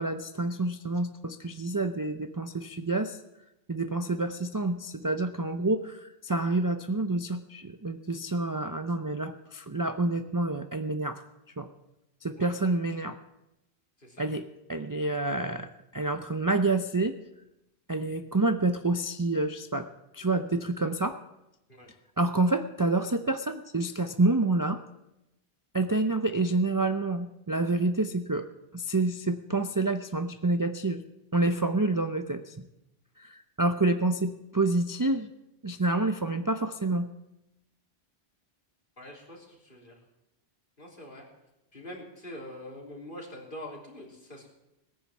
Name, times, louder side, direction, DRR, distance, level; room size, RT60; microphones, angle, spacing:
voice 1, 0.0-3.2 3.7-11.2 11.6-11.7 12.2-13.2 14.2-17.2 17.9-19.9 20.1-21.2 22.2-24.8 25.7-28.5 28.7-31.0 31.3-32.6 33.2-35.3 35.6-37.1, right 2 dB, 25° right, 7 dB, 0.5 m, -28 dB
voice 2, 14.0-14.3 21.7-21.9 39.0-39.9 40.8-41.2 41.7-44.5, left 1 dB, 50° left, -1 dB, 3.5 m, -44 dB
18.0 x 10.0 x 7.3 m, 0.91 s
omnidirectional pair, 1.1 m